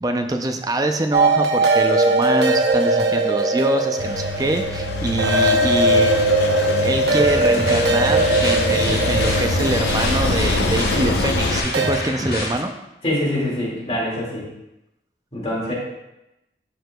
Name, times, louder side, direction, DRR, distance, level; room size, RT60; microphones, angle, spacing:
voice 1, 0.0-6.3 6.8-12.7, right 1 dB, 20° right, 5 dB, 0.5 m, -24 dB
sound 1, 1.1-11.9, right 2 dB, 75° right, 0.9 m, -20 dB
Engine, 4.0-11.6, left 2 dB, 85° left, 0.7 m, -25 dB
sound 2, 7.1-12.6, left 1 dB, 60° left, 1.8 m, -28 dB
voice 2, 13.0-14.5 15.3-15.7, left 1 dB, 35° left, -5 dB, 2.1 m, -24 dB
12.5 x 4.8 x 2.3 m, 0.92 s
head